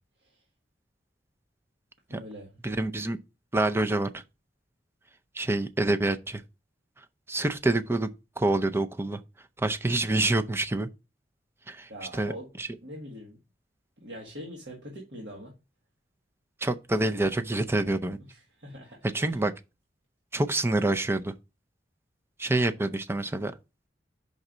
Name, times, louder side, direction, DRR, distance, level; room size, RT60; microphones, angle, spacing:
voice 1, 2.1-2.5 11.9-12.5 12.8-13.4 14.0-15.5 18.6-19.0, equal, 65° right, 1.7 m, -42 dB
voice 2, 2.6-3.2 3.5-4.2 5.3-6.4 7.0-8.1 8.4-9.2 9.6-10.9 11.7-12.7 16.6-18.2 19.0-19.5 20.3-21.3 22.4-23.5, right 2 dB, 15° right, 0.5 m, -27 dB
5.4 x 3.9 x 6.0 m
head